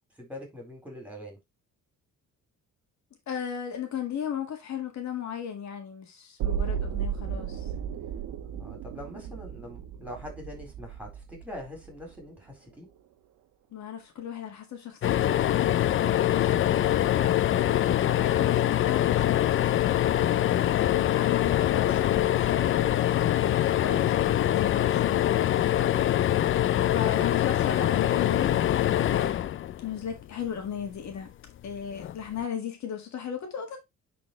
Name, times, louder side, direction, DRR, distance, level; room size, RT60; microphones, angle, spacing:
voice 1, 0.2-1.4 8.4-12.9 27.0-27.2, left 1 dB, 5° right, 4.0 m, -43 dB
voice 2, 3.3-7.7 13.7-17.5 18.1-20.4 20.8-23.0 23.4-25.6 26.9-28.6 29.8-31.3 31.6-33.8, left 8 dB, 65° left, 1.8 m, -36 dB
sound 1, 6.4-12.4 12.7-12.8, right 8 dB, 85° right, 1.2 m, -34 dB
sound 2, 15.0-30.3 32.0-32.1 32.4-32.5, left 12 dB, 45° left, 0.4 m, -24 dB
10.5 x 4.3 x 3.1 m
cardioid pair, 135°, 30 cm